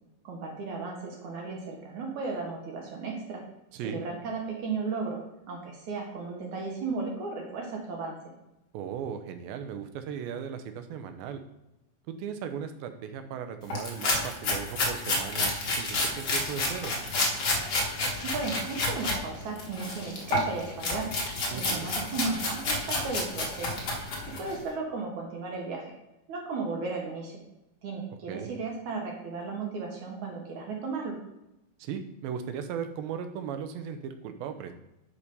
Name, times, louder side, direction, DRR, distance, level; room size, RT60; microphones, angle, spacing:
voice 1, 0.2-3.4 3.8-5.2 5.5-8.2 18.2-21.1 21.5-23.8 24.4-25.9 26.3-27.4 27.8-31.2, right 4 dB, 60° right, 0 dB, 2.4 m, -35 dB
voice 2, 8.7-11.4 12.1-16.9 21.5-21.9 28.3-28.5 31.8-34.7, right 7 dB, 80° right, 8 dB, 2.6 m, -37 dB
sound 1, 13.7-19.2 19.6-24.5, left 2 dB, 60° left, 1.1 m, -30 dB
sound 2, 16.2-24.6, left 2 dB, 35° left, 3.0 m, -46 dB
9.9 x 4.9 x 5.4 m, 0.91 s
omnidirectional pair, 4.3 m